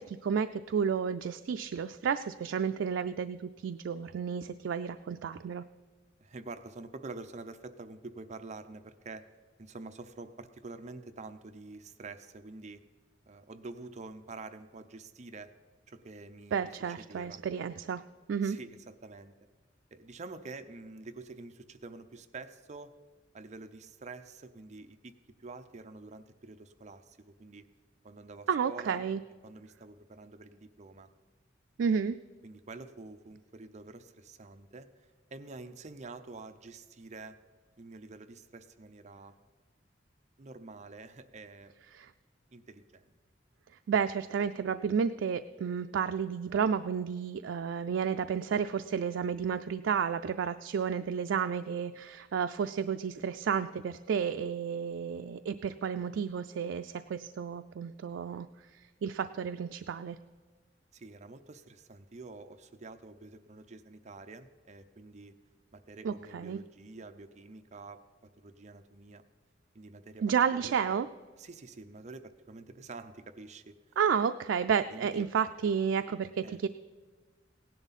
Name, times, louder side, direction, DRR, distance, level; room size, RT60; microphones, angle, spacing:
voice 1, 0.0-3.4 3.6-5.6 16.5-18.0 18.3-18.6 28.5-29.2 31.8-32.2 41.9-42.1 43.9-58.5 59.0-60.2 66.0-66.6 70.2-71.1 74.0-76.7, right 7 dB, 85° right, 9 dB, 0.4 m, -31 dB
voice 2, 6.2-9.3 9.6-12.8 13.3-15.5 15.9-17.4 18.4-19.4 19.9-22.9 23.3-27.7 28.0-29.1 29.4-31.1 32.4-37.4 37.8-39.3 40.4-41.7 42.5-43.1 60.9-65.3 65.7-69.2 69.7-71.0 71.4-73.7 74.9-75.3 76.4-76.7, right 3 dB, 40° right, 9 dB, 0.6 m, -47 dB
17.0 x 10.5 x 4.1 m, 1.4 s
head